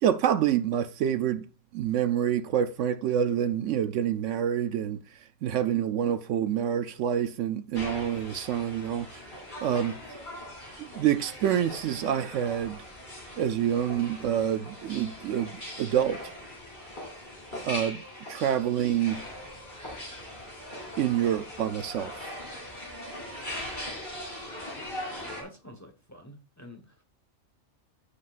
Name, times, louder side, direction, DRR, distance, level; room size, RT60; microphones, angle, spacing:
voice 1, 0.0-1.4 1.7-5.0 5.4-9.2 9.6-10.0 10.8-12.8 13.4-15.5 15.8-16.2 17.6-18.0 18.3-19.2 21.0-22.3, right 10 dB, 70° right, 0.9 m, -27 dB
sound 1, 7.7-25.4, left 1 dB, 35° left, 3.3 m, -41 dB
voice 2, 24.7-27.0, equal, 15° left, 1.1 m, -49 dB
15.0 x 5.0 x 2.5 m
omnidirectional pair, 1.4 m